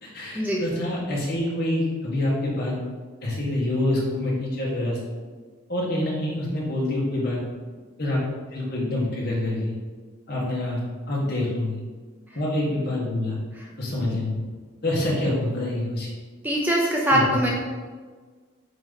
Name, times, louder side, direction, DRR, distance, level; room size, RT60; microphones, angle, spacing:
voice 1, 0.0-2.7 3.2-5.0 5.7-7.4 8.0-8.2 8.5-9.7 10.3-10.8 11.1-11.8 12.3-13.4 13.8-14.4 14.8-16.1 17.1-17.5, left 1 dB, 50° left, -5 dB, 1.6 m, -26 dB
voice 2, 16.4-17.5, equal, 10° right, -3 dB, 0.6 m, -22 dB
8.6 x 3.0 x 4.0 m, 1.5 s
head